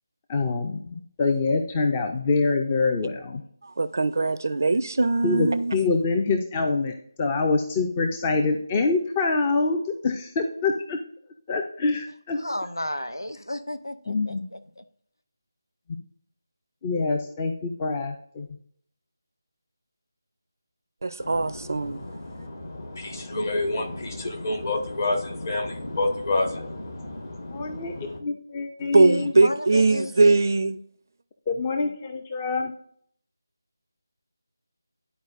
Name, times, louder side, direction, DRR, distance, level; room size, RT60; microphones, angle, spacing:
voice 1, 0.3-3.4 5.2-11.0 11.5-12.4 14.1-14.4 16.8-18.5 27.5-29.3 31.5-32.7, left 3 dB, 20° left, 0.5 m, -25 dB
voice 2, 3.8-5.7 21.0-22.0 28.9-30.8, right 3 dB, 50° right, 0.4 m, -21 dB
voice 3, 12.3-14.8 29.2-30.4, left 1 dB, 85° left, 0.7 m, -33 dB
voice 4, 21.2-28.2, left 2 dB, 45° left, 1.6 m, -29 dB
11.5 x 4.4 x 2.5 m
figure-of-eight pair, 160°, 2 cm